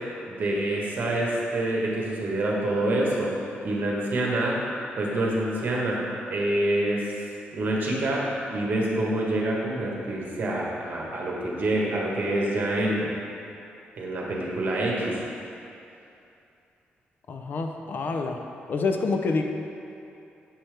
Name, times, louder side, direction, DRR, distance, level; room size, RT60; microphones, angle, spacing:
voice 1, 0.3-3.3 3.6-4.6 5.0-6.0 6.3-7.0 7.5-13.1 14.0-15.2, right 1 dB, 55° right, -3 dB, 1.3 m, -26 dB
voice 2, 17.3-18.4 18.7-19.4, left 4 dB, 55° left, 4 dB, 0.5 m, -27 dB
7.5 x 5.6 x 3.4 m, 2.7 s
cardioid pair, 120°, 4 cm